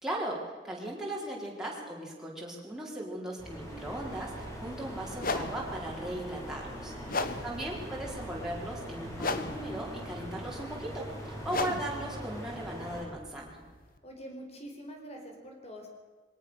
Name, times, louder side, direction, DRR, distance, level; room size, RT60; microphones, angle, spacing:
voice 1, 0.0-7.0 7.4-13.6, right 1 dB, 5° right, -4 dB, 4.8 m, -38 dB
sound 1, 3.4-13.0, equal, 15° left, 6.8 m, -42 dB
sound 2, 4.4-4.5 5.1-14.0, left 3 dB, 50° left, 1.4 m, -38 dB
voice 2, 6.9-7.8 10.4-10.6 14.0-15.9, equal, 35° left, 3 dB, 4.7 m, -47 dB
22.5 x 18.0 x 6.7 m, 1.4 s
head